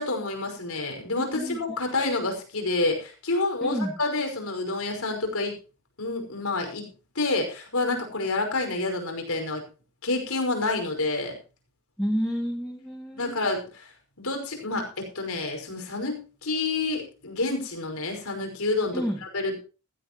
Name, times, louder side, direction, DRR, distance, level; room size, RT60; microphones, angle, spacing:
voice 1, 0.0-5.6 6.0-6.9 7.2-9.6 10.0-11.4 13.1-13.9 14.2-19.0 19.3-19.6, left 2 dB, 70° left, 4 dB, 5.5 m, -28 dB
voice 2, 1.2-1.8 3.6-4.0 12.0-13.3 18.9-19.2, equal, 5° left, -1 dB, 2.5 m, -30 dB
16.0 x 15.0 x 3.1 m, 0.33 s
head